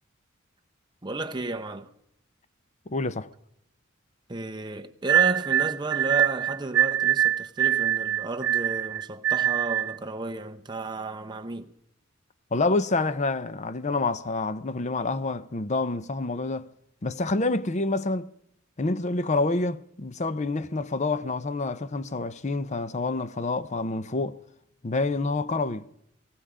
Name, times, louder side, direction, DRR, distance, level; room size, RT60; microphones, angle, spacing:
voice 1, 1.0-1.9 4.3-11.7, right 2 dB, 20° right, 0.9 m, -33 dB
voice 2, 2.9-3.3 12.5-16.7 17.0-18.3 18.8-24.4 24.8-25.9, left 3 dB, 35° left, 0.6 m, -27 dB
sound 1, 5.1-10.0, right 11 dB, 75° right, 0.6 m, -24 dB
18.5 x 15.5 x 5.0 m
head